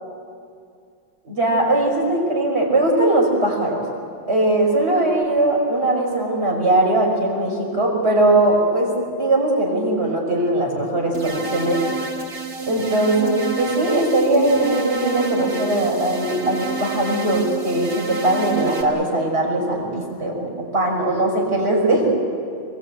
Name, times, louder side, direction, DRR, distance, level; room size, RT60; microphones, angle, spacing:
voice 1, 1.2-3.8 4.3-11.8 12.7-22.1, right 1 dB, 30° right, -1 dB, 5.7 m, -20 dB
sound 1, 11.1-18.8, right 3 dB, 85° right, 3.4 m, -29 dB
25.0 x 21.5 x 8.8 m, 2.3 s
omnidirectional pair, 2.3 m